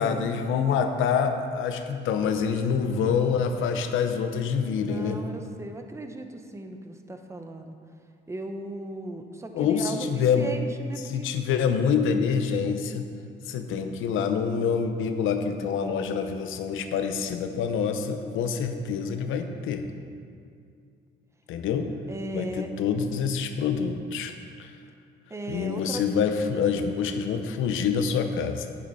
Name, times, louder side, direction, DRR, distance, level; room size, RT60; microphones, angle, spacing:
voice 1, 0.0-5.2 9.5-10.5 11.1-13.1 13.5-19.9 21.5-21.9 22.3-24.3 24.6-24.7 25.5-28.7, left 6 dB, 85° left, 7 dB, 0.8 m, -26 dB
voice 2, 4.8-7.8 8.3-11.3 22.1-22.7 25.3-26.0, right 1 dB, 15° right, 5 dB, 0.9 m, -37 dB
9.8 x 8.5 x 4.2 m, 2.3 s
cardioid pair, 90°, 20 cm